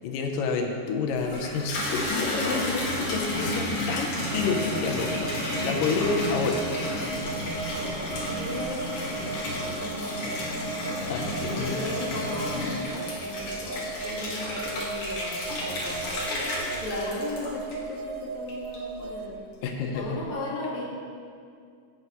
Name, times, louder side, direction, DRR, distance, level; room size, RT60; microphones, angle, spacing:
voice 1, 0.0-5.3 5.6-6.6 11.0-11.8 19.6-20.2, left 4 dB, 80° left, 3 dB, 2.4 m, -29 dB
Water tap faucet / Bathtub (filling or washing), 1.1-18.0 18.5-19.1, left 1 dB, 55° left, 2.4 m, -31 dB
sound 1, 4.3-19.3, right 4 dB, 80° right, 2.2 m, -37 dB
voice 2, 7.7-10.8 11.2-19.4 19.9-20.9, left 1 dB, 35° left, -6 dB, 1.8 m, -37 dB
15.5 x 6.9 x 3.0 m, 2.3 s
omnidirectional pair, 3.8 m